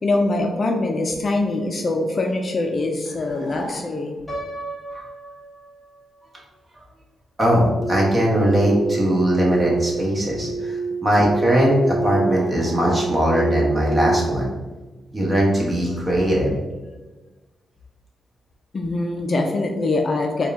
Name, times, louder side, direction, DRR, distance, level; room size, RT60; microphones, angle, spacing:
voice 1, 0.0-4.1 18.7-20.5, left 2 dB, 40° left, 3 dB, 0.4 m, -23 dB
sound 1, 3.1-4.2 12.3-13.6, right 1 dB, 55° right, 0.9 m, -37 dB
Piano, 4.3-6.2, right 1 dB, 20° left, 0.9 m, -35 dB
voice 2, 7.4-14.5 15.1-16.5, equal, 25° right, -3 dB, 1.2 m, -20 dB
sound 2, 7.8-14.2, right 3 dB, 80° left, 0.6 m, -27 dB
4.2 x 2.3 x 3.6 m, 1.2 s
cardioid pair, 110°, 0 cm